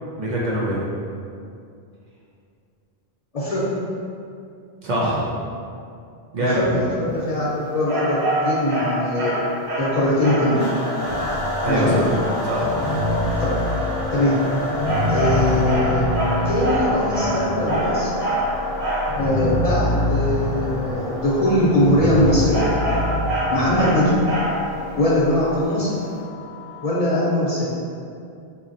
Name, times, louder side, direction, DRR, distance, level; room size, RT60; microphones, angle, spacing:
voice 1, 0.2-0.8 4.8-5.3 6.3-6.6 11.6-12.0 12.4-12.8, right 1 dB, 50° right, -6 dB, 0.7 m, -23 dB
voice 2, 6.4-8.2 8.4-9.3 9.8-10.6 11.7-12.0 13.4-13.5 14.1-14.3 15.1-16.0 16.4-18.1 19.2-22.5 23.5-24.1 25.0-25.9 26.8-27.7, left 1 dB, 45° left, -8 dB, 0.6 m, -21 dB
sound 1, 7.9-10.6 14.8-19.2 22.5-24.8, equal, 85° right, 1.2 m, -25 dB
sound 2, 10.5-27.2, left 1 dB, 15° right, 1.2 m, -30 dB
sound 3, 11.1-14.2 14.7-25.6, equal, 70° left, 0.9 m, -27 dB
4.2 x 2.7 x 2.5 m, 2.5 s
omnidirectional pair, 1.0 m